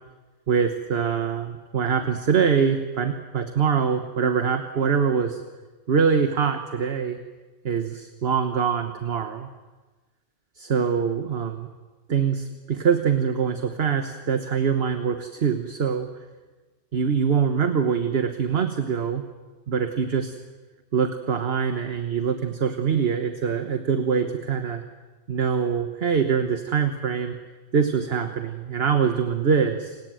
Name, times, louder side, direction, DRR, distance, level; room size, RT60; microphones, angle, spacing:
voice 1, 0.5-5.4 5.9-7.2 7.6-9.5 10.6-11.5 12.1-16.1 16.9-19.2 19.7-20.3 20.9-24.8 25.3-27.4 27.7-30.0, right 6 dB, 55° right, 7 dB, 1.4 m, -24 dB
29.0 x 19.0 x 7.8 m, 1.3 s
omnidirectional pair, 1.3 m